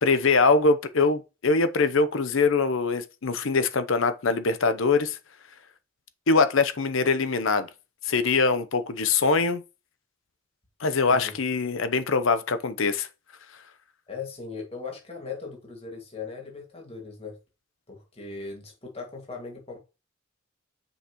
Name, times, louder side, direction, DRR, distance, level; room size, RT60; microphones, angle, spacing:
voice 1, 0.0-5.2 6.3-7.7 8.1-9.6 10.8-13.1, left 4 dB, 65° left, 0.7 m, -23 dB
voice 2, 14.1-17.4 17.9-19.8, left 4 dB, 30° left, 2.0 m, -38 dB
7.0 x 5.7 x 3.0 m
head